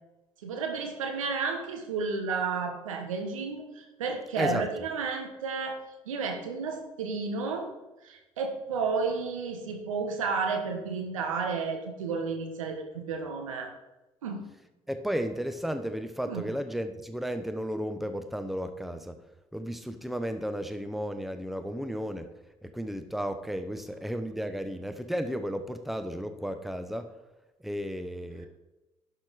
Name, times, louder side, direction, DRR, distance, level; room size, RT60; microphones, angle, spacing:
voice 1, 0.4-5.8 6.1-7.7 8.0-13.7 14.2-14.5 16.2-16.5, right 4 dB, 80° right, 4 dB, 1.3 m, -32 dB
voice 2, 4.4-4.7 14.9-19.2 19.5-22.3 22.6-27.1 27.6-28.5, equal, ahead, 9 dB, 1.0 m, -33 dB
11.5 x 6.4 x 4.9 m, 1.0 s
figure-of-eight pair, 50°, 17 cm